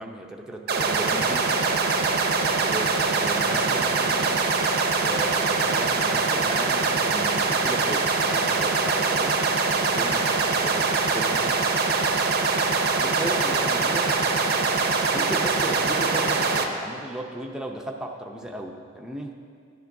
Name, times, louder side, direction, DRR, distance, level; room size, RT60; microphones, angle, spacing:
voice 1, 0.0-1.5 2.5-4.4 5.0-9.4 9.7-11.6 13.0-14.2 15.1-19.4, right 1 dB, 5° right, 0 dB, 0.5 m, -35 dB
sound 1, 0.7-16.6, right 4 dB, 45° right, 0.6 m, -23 dB
11.5 x 10.5 x 2.6 m, 2.2 s
head